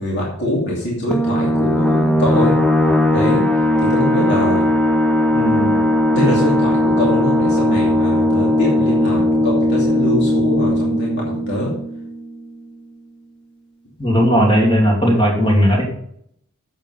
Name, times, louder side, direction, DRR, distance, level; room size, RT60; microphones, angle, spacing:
voice 1, 0.0-2.5 3.1-3.4 3.9-4.7 5.3-5.9 6.1-11.7, equal, 50° left, -4 dB, 2.7 m, -23 dB
sound 1, 1.1-12.4, left 1 dB, 5° left, 0.7 m, -17 dB
voice 2, 14.0-15.8, equal, 25° left, -2 dB, 2.9 m, -15 dB
8.9 x 7.5 x 5.4 m, 0.70 s
head